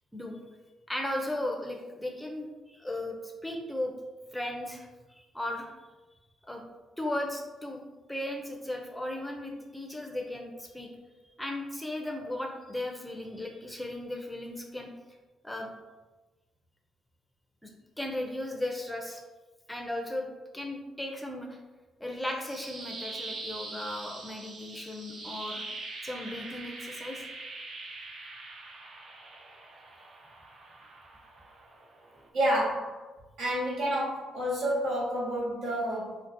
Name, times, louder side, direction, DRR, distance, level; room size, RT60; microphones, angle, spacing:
voice 1, 0.1-0.4 0.9-3.9 4.3-5.7 6.4-6.6 7.0-7.8 8.1-10.9 11.4-14.9 15.4-15.7 17.6-17.7 18.0-19.2 19.7-21.6 22.0-25.6 26.0-27.2, left 1 dB, 5° left, 1 dB, 0.4 m, -36 dB
sound 1, 22.2-32.3, right 2 dB, 60° right, 0.5 m, -43 dB
voice 2, 32.3-33.1 33.4-36.2, equal, 85° right, -7 dB, 1.5 m, -29 dB
3.8 x 2.0 x 2.6 m, 1.2 s
cardioid pair, 90°, 0 cm